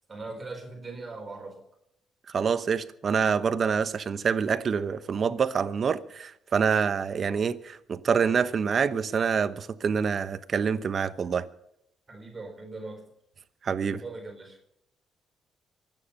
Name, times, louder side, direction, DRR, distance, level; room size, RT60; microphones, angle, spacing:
voice 1, 0.1-1.7 12.1-13.0 13.8-14.6, right 3 dB, 25° right, 4.2 m, -40 dB
voice 2, 2.3-11.4 13.6-14.0, right 6 dB, 50° right, 1.0 m, -26 dB
24.5 x 9.3 x 5.5 m
cardioid pair, 90°, 0 cm